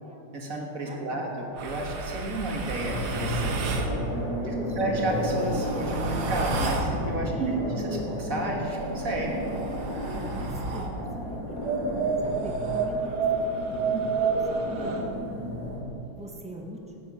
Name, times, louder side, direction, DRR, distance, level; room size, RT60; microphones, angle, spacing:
voice 1, 0.3-3.7 4.8-9.4, right 2 dB, 45° right, 0 dB, 1.8 m, -31 dB
voice 2, 0.9-1.2 4.4-5.0 7.3-7.7 8.0-8.1 10.1-11.6 12.2-13.2 13.8-15.1 16.1-16.9, right 1 dB, 5° right, 0 dB, 0.8 m, -43 dB
sound 1, 1.6-3.9 4.9-6.9 8.6-10.9 11.6-15.0, right 4 dB, 90° right, 2.0 m, -30 dB
sound 2, 2.7-15.8, equal, 85° left, 3.9 m, -33 dB
13.5 x 9.3 x 5.3 m, 2.8 s
omnidirectional pair, 2.3 m